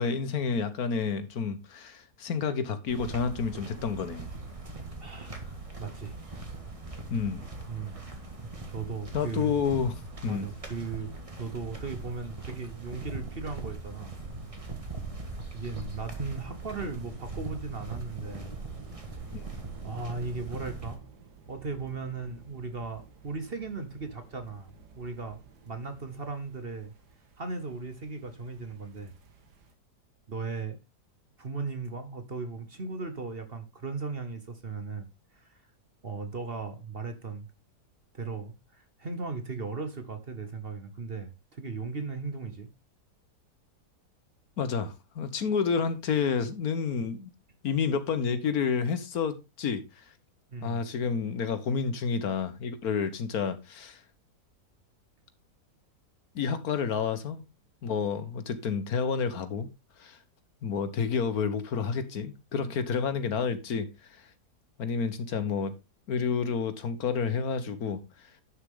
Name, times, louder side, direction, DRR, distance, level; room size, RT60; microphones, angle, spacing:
voice 1, 0.0-4.3 7.1-7.4 9.1-9.9 10.2-10.5 19.3-19.4 44.6-47.3 47.6-49.8 50.6-54.0 56.3-57.4 57.8-59.7 60.0-60.2 60.6-64.2 64.8-65.7 66.1-68.0, left 6 dB, 65° left, 1.5 m, -29 dB
sound 1, 2.9-21.0, right 3 dB, 20° right, 1.7 m, -41 dB
voice 2, 5.0-5.3 5.8-6.2 7.7-8.1 8.7-9.5 10.2-14.1 15.5-18.6 19.8-21.0 21.5-25.4 25.6-26.9 27.4-29.1 30.3-30.8 31.4-35.1 35.3-35.6 36.0-37.5 38.1-42.7 44.8-44.9 50.5-50.9, right 4 dB, 40° right, 1.2 m, -37 dB
sound 2, 18.2-29.7, right 5 dB, 90° right, 2.1 m, -52 dB
11.0 x 6.6 x 3.7 m
omnidirectional pair, 1.7 m